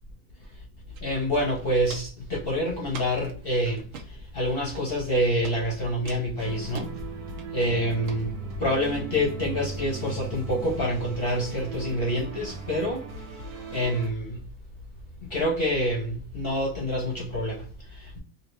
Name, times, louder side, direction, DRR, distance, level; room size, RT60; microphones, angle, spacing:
Walk footsteps, 0.9-1.0 1.3-2.2 2.9-3.3 3.8-4.1 4.7-5.1 5.4-5.6 6.1-6.9 7.4-7.7 8.0-8.2 8.7-8.8, right 5 dB, 85° right, 0.7 m, -42 dB
voice 1, 1.0-6.9 7.5-13.0 13.7-14.4 15.2-18.2, equal, 50° left, 0.7 m, -27 dB
sound 1, 6.4-14.1, right 4 dB, 60° right, 1.2 m, -38 dB
3.4 x 2.7 x 3.2 m
omnidirectional pair, 2.1 m